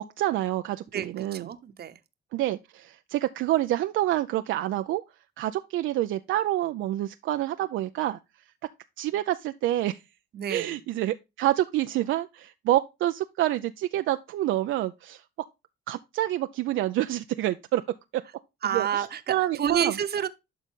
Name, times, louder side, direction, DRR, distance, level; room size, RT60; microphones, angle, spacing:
voice 1, 0.0-1.5 2.3-5.0 5.4-8.2 9.0-10.0 10.5-15.2 15.9-17.8 18.7-19.9, right 14 dB, 80° right, 0.5 m, -27 dB
voice 2, 0.9-2.0 10.3-10.8 18.6-20.3, right 8 dB, 55° right, 1.0 m, -29 dB
11.5 x 4.0 x 3.6 m
cardioid pair, 90°, 20 cm